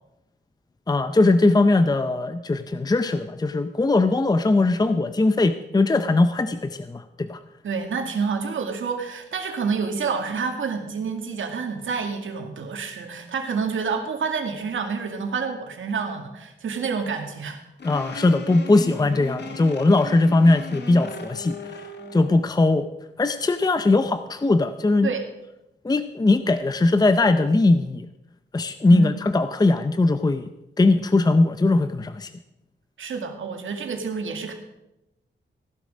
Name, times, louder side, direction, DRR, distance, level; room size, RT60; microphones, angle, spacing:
voice 1, 0.9-7.4 17.8-21.9 22.1-22.9 23.2-25.1 25.8-28.1 28.5-30.5 30.8-32.3, left 2 dB, 20° left, 10 dB, 0.6 m, -20 dB
voice 2, 7.6-17.6 17.9-18.1 25.0-25.3 28.9-29.2 33.0-34.5, right 5 dB, 80° right, 4 dB, 2.1 m, -28 dB
sound 1, 17.8-22.4, left 2 dB, 60° left, 1.9 m, -37 dB
16.0 x 11.5 x 5.1 m, 0.92 s
wide cardioid pair, 120°, 20 cm